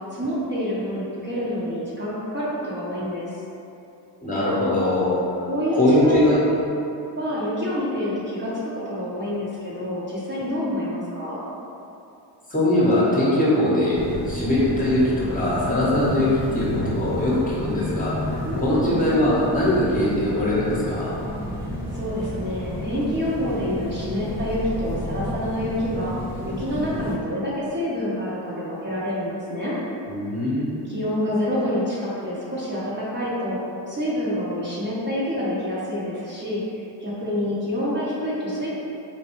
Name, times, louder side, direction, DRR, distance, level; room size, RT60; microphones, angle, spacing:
voice 1, 0.1-3.3 5.4-6.4 7.2-11.4 18.4-18.9 21.9-26.1 26.4-29.7 30.8-33.6 33.9-38.7, equal, 25° right, -9 dB, 0.9 m, -27 dB
voice 2, 4.2-5.4 5.8-6.4 12.5-14.0 14.3-16.3 16.5-21.1 30.1-30.8, left 1 dB, 20° left, -8 dB, 1.0 m, -21 dB
sound 1, 13.9-27.2, left 1 dB, 5° right, 1.1 m, -31 dB
4.3 x 2.2 x 3.0 m, 2.7 s
cardioid pair, 85°, 45 cm